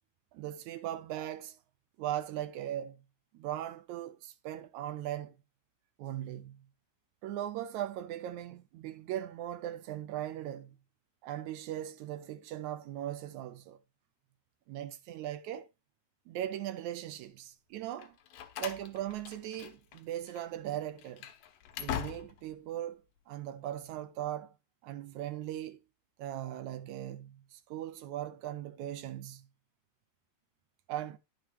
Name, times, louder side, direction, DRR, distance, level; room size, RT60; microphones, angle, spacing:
voice 1, 0.3-1.6 2.0-3.0 3.3-5.4 6.0-6.6 7.2-10.8 11.2-13.8 14.7-15.7 16.3-18.2 18.6-21.3 21.8-24.5 24.8-25.8 26.2-29.5 30.9-31.2, right 12 dB, 75° right, 1.9 m, -39 dB
Slam, 18.0-20.0 20.3-20.5 21.0-22.6, left 10 dB, 90° left, 2.7 m, -41 dB
11.0 x 6.6 x 3.2 m
omnidirectional pair, 3.8 m